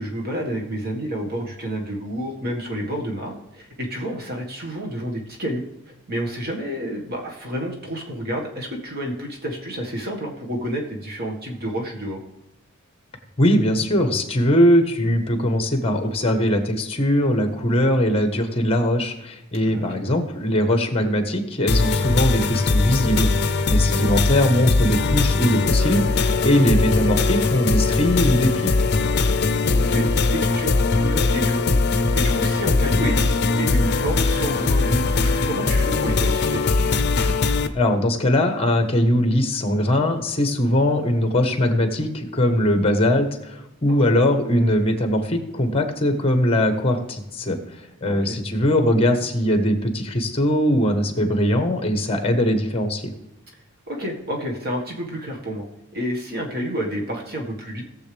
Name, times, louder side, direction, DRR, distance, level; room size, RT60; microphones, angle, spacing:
voice 1, 0.0-12.2 19.6-20.0 23.7-24.1 29.3-36.6 43.9-44.1 48.0-48.4 53.9-55.6 55.9-57.8, equal, 45° right, 0 dB, 1.7 m, -30 dB
voice 2, 13.4-23.3 23.7-28.7 37.7-47.6 48.0-53.1, left 1 dB, 25° left, 6 dB, 1.2 m, -21 dB
sound 1, 21.7-37.7, left 3 dB, 50° left, 0.6 m, -20 dB
18.5 x 6.9 x 3.4 m, 0.90 s
head